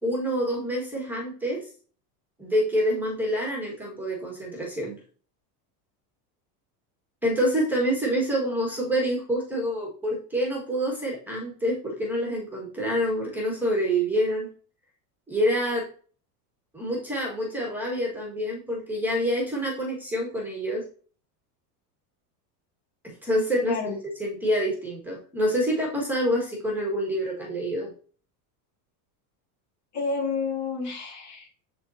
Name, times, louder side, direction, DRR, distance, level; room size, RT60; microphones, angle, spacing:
voice 1, 0.0-1.7 2.4-4.9 7.2-14.5 15.3-15.9 16.7-20.8 23.2-27.9, equal, 5° right, -3 dB, 1.9 m, -27 dB
voice 2, 29.9-31.5, left 4 dB, 35° left, -1 dB, 2.5 m, -30 dB
10.0 x 4.0 x 2.8 m, 0.42 s
supercardioid pair, 135°, 46 cm